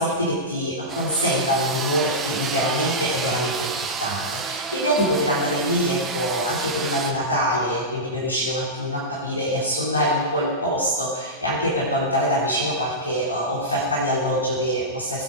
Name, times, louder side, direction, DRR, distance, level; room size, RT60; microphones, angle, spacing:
voice 1, 0.0-15.2, equal, 80° left, -6 dB, 3.4 m, -24 dB
sound 1, 0.9-7.1, right 6 dB, 20° right, 1.5 m, -30 dB
20.0 x 8.7 x 4.8 m, 1.5 s
figure-of-eight pair, 90°, 0 cm